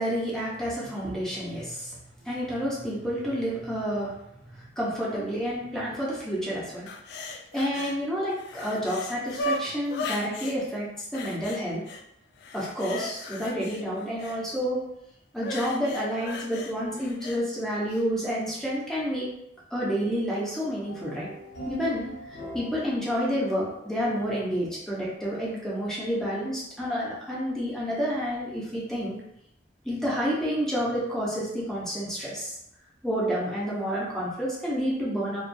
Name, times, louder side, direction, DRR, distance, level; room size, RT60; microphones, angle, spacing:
voice 1, 0.0-2.0 2.2-4.2 4.5-6.9 7.5-10.9 11.1-11.8 12.5-14.8 15.3-19.3 19.7-21.3 21.7-29.2 29.8-32.6 33.0-35.4, equal, 5° left, -7 dB, 0.7 m, -29 dB
sound 1, 6.9-8.0 8.3-10.6 11.1-12.0 12.4-14.4 15.4-17.4 17.9-18.0, left 2 dB, 65° left, 0.3 m, -36 dB
sound 2, 20.8-25.1, right 1 dB, 80° left, 0.7 m, -42 dB
2.4 x 2.3 x 2.6 m, 0.80 s
head